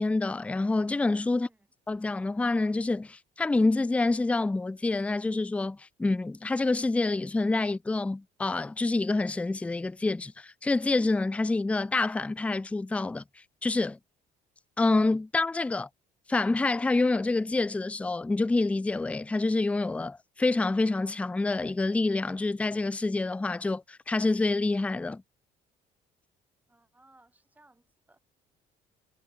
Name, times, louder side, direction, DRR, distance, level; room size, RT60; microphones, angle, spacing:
voice 1, 0.0-1.5 1.9-13.2 13.6-14.0 14.8-15.9 16.3-25.2, left 3 dB, 10° left, 0.4 m, -27 dB
voice 2, 1.3-1.7 26.7-28.2, right 2 dB, 10° right, 2.3 m, -62 dB
cardioid pair, 110°, 17 cm